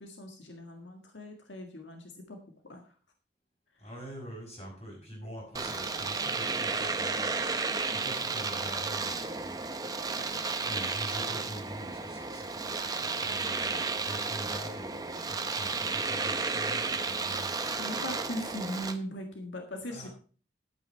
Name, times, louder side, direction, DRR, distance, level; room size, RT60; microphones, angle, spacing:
voice 1, 0.0-2.4 2.7-2.8 17.0-17.2 17.7-20.1, equal, 85° left, 3 dB, 1.8 m, -40 dB
voice 2, 3.8-9.7 10.6-17.9 19.9-20.1, equal, 35° left, -1 dB, 6.1 m, -45 dB
Domestic sounds home sounds, 5.6-19.0, right 4 dB, 20° right, 0.8 m, -33 dB
11.5 x 8.9 x 4.4 m, 0.41 s
head